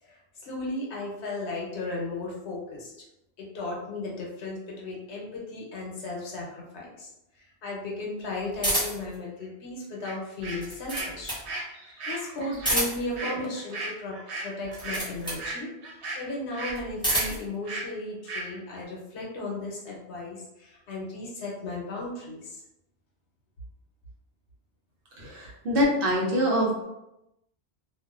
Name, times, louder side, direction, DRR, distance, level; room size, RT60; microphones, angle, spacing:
voice 1, 0.0-2.9 3.4-7.1 7.4-11.4 11.8-15.7 16.1-22.6, left 2 dB, 85° left, -3 dB, 1.0 m, -35 dB
sound 1, 8.6-9.1 10.4-11.5 12.5-13.2 14.6-15.5 16.7-17.5, right 1 dB, 5° left, 0.8 m, -29 dB
sound 2, 10.0-10.1 10.4-16.8 17.1-17.3 17.7-17.9 18.3-18.5, right 2 dB, 90° right, 0.9 m, -36 dB
voice 2, 25.2-26.8, equal, 60° right, -3 dB, 0.8 m, -25 dB
2.5 x 2.1 x 2.3 m, 0.89 s
omnidirectional pair, 1.1 m